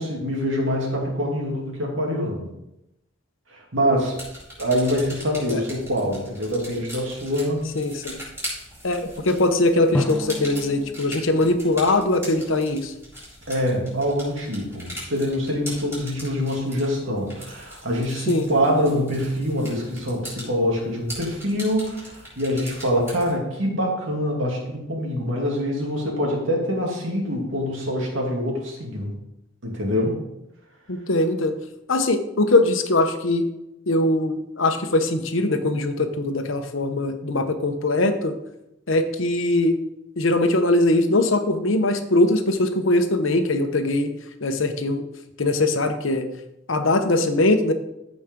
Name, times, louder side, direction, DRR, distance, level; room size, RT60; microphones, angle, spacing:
voice 1, 0.0-2.5 3.5-4.1 4.6-7.7 13.5-29.1 29.6-30.2, equal, 75° right, -1 dB, 2.5 m, -25 dB
sound 1, 3.9-23.3, equal, 10° right, 3.8 m, -40 dB
voice 2, 7.7-8.2 8.8-12.9 18.3-18.5 30.9-31.5 31.9-33.4 33.9-38.3 38.9-39.7 40.2-44.1 44.4-45.0 45.4-46.2 46.7-47.7, left 2 dB, 80° left, 7 dB, 1.0 m, -21 dB
Drum, 9.9-12.8, left 1 dB, 10° left, 0.7 m, -32 dB
14.5 x 5.2 x 3.7 m, 0.87 s
head